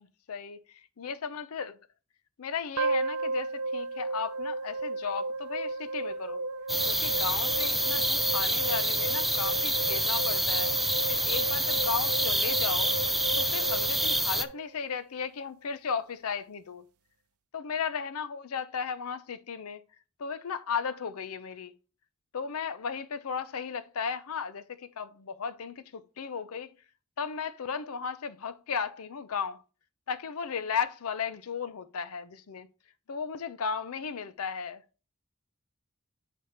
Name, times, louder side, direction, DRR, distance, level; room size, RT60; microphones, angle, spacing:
voice 1, 1.0-1.7 2.4-6.4 6.8-10.7 11.1-12.9 13.4-16.8 17.5-19.8 20.2-21.7 22.3-26.7 27.2-29.6 30.1-32.7 33.1-34.8, left 6 dB, 75° left, 0.6 m, -35 dB
sound 1, 2.8-15.0, right 3 dB, 80° right, 0.6 m, -34 dB
sound 2, 6.7-14.4, right 1 dB, ahead, 0.4 m, -27 dB
8.6 x 3.4 x 4.3 m
head